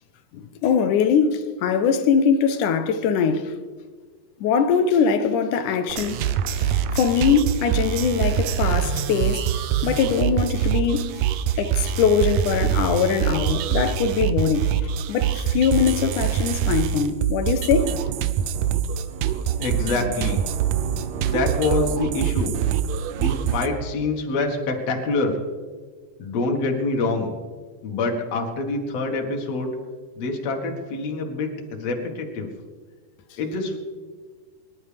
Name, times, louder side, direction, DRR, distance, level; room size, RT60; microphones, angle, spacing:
voice 1, 0.3-3.5 4.4-6.3 6.6-9.5 9.8-11.1 11.6-14.7 15.1-17.9, left 6 dB, 75° left, 2.2 m, -22 dB
sound 1, 5.9-23.7, right 9 dB, 80° right, 1.6 m, -24 dB
voice 2, 19.6-20.4 21.2-22.5 23.2-25.4 26.2-27.3 27.8-29.7 30.2-32.5 33.4-33.8, left 3 dB, 55° left, 2.6 m, -26 dB
23.0 x 11.5 x 3.4 m
omnidirectional pair, 3.8 m